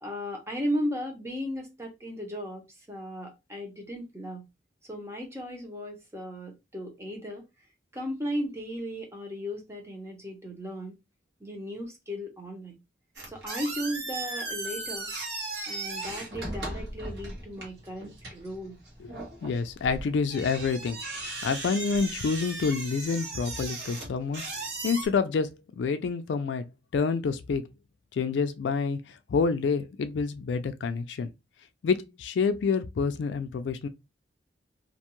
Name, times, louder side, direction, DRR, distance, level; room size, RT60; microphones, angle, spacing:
voice 1, 0.0-4.4 4.9-7.5 7.9-11.0 11.4-12.8 13.3-15.1 15.7-18.8, equal, 15° right, 0.7 m, -36 dB
sound 1, 13.2-25.1, right 2 dB, 65° right, 1.1 m, -37 dB
voice 2, 19.4-24.4 24.8-26.6 26.9-27.6 28.1-31.3 31.8-33.9, left 5 dB, 70° left, 0.3 m, -28 dB
2.5 x 2.3 x 2.9 m
head